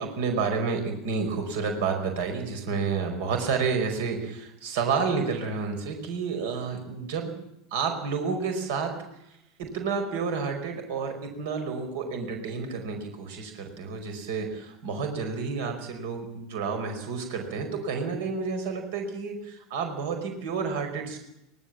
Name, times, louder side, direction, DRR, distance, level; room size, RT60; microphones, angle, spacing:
voice 1, 0.0-7.3 7.7-8.9 9.6-21.2, right 5 dB, 60° right, 5 dB, 5.2 m, -30 dB
23.5 x 19.5 x 7.5 m, 0.82 s
figure-of-eight pair, 80°, 0 cm